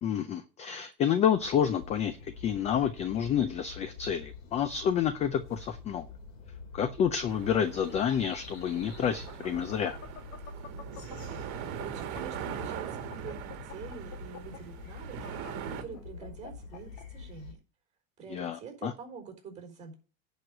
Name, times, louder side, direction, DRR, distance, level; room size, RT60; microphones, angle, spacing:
voice 1, 0.0-6.0 6.7-10.0 18.3-18.9, left 8 dB, 20° left, 0.4 m, -29 dB
sound 1, 1.3-17.5, left 4 dB, 85° left, 2.6 m, -46 dB
sound 2, 7.3-15.8, right 10 dB, 45° right, 1.9 m, -41 dB
sound 3, 7.9-11.3 11.7-17.0, left 7 dB, 55° left, 2.5 m, -47 dB
voice 2, 10.9-15.3 15.7-17.6 18.2-19.9, right 6 dB, 20° right, 4.1 m, -46 dB
10.5 x 4.9 x 7.9 m
supercardioid pair, 140°, 38 cm